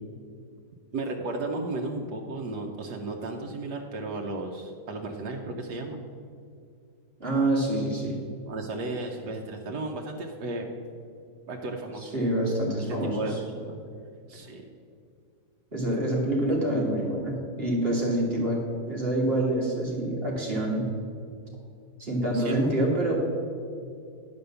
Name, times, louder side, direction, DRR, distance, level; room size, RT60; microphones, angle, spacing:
voice 1, 0.9-6.0 8.5-10.7 11.5-12.2 12.9-13.3 13.6-13.8 14.3-14.6 22.3-22.9, right 2 dB, 80° right, 0 dB, 1.4 m, -34 dB
voice 2, 7.2-8.2 12.1-13.3 15.7-20.8 22.0-23.1, right 1 dB, 35° right, -3 dB, 2.1 m, -26 dB
10.5 x 5.3 x 6.8 m, 2.3 s
omnidirectional pair, 1.7 m